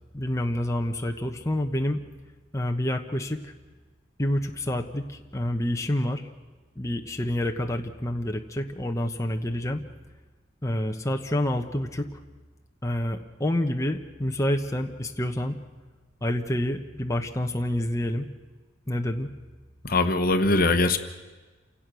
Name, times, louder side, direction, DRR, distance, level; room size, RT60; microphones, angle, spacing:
voice 1, 0.1-2.0 2.5-3.5 4.2-6.3 6.8-9.8 10.6-12.1 12.8-15.5 16.2-18.2 18.9-19.3, left 1 dB, 15° left, 3 dB, 1.1 m, -28 dB
voice 2, 19.8-21.0, left 2 dB, 50° left, 9 dB, 1.2 m, -21 dB
28.5 x 17.5 x 6.3 m, 1.3 s
head